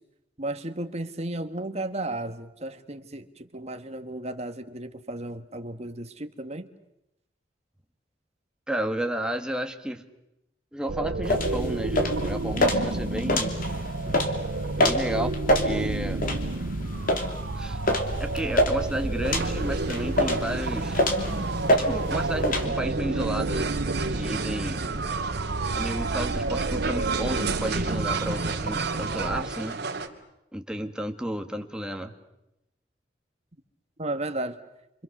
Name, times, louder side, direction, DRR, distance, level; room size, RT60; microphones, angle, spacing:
voice 1, 0.4-6.7 21.1-21.5 34.0-34.6, right 1 dB, 40° right, 8 dB, 1.6 m, -34 dB
voice 2, 8.7-10.0 10.7-13.5 14.8-15.3 15.6-16.2 17.6-17.8 18.2-21.0 21.7-23.7 24.1-24.8 25.8-29.8 30.5-32.1, right 1 dB, 5° right, 5 dB, 1.7 m, -32 dB
sound 1, 10.9-29.4, right 2 dB, 85° right, 0.9 m, -30 dB
sound 2, 11.2-22.7, left 1 dB, 50° left, 3.0 m, -27 dB
sound 3, 19.2-30.1, right 4 dB, 65° right, 2.6 m, -34 dB
29.5 x 26.0 x 6.7 m, 0.86 s
head